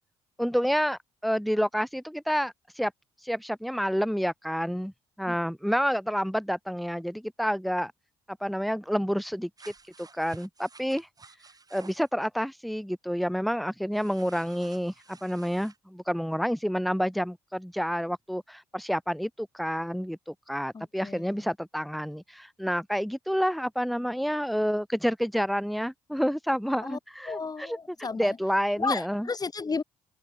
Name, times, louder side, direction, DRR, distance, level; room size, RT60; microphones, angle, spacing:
voice 1, 0.4-2.9 3.2-4.9 5.2-7.9 8.4-9.5 10.1-11.1 11.7-27.8 28.1-29.3, equal, ahead, 1.1 m, -29 dB
sound 1, 9.6-12.1 13.9-15.8, right 4 dB, 30° right, 7.5 m, -52 dB
voice 2, 20.7-21.4 26.8-27.0 27.3-28.4 28.8-29.8, left 4 dB, 30° left, 1.8 m, -33 dB
supercardioid pair, 75°, 13 cm